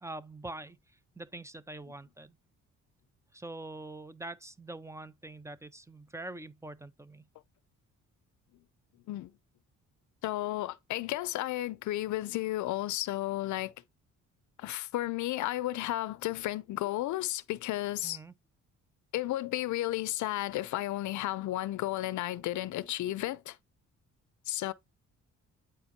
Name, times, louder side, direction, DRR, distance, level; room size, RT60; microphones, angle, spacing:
voice 1, 0.0-2.4 3.3-7.3 18.0-18.3, right 2 dB, 10° right, 0.5 m, -44 dB
voice 2, 10.2-13.7 14.6-18.2 19.1-23.6 24.5-24.7, left 16 dB, 75° left, 0.5 m, -33 dB
8.6 x 4.5 x 2.6 m
cardioid pair, 90°, 30 cm